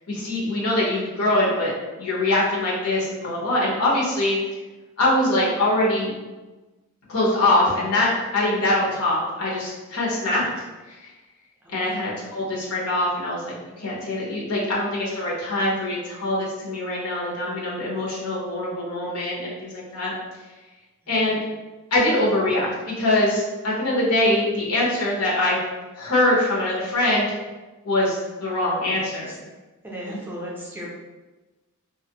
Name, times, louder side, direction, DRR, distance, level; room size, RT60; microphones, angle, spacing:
voice 1, 0.1-4.4 5.0-6.1 7.1-10.4 10.9-11.1 11.7-20.1 21.1-21.4 21.9-25.6 26.0-27.3 27.8-29.3, left 1 dB, 90° left, -4 dB, 0.9 m, -23 dB
voice 2, 11.6-12.0 21.0-21.1 28.9-29.3 29.8-30.9, equal, 10° right, -4 dB, 0.4 m, -36 dB
2.5 x 2.4 x 2.8 m, 1.2 s
head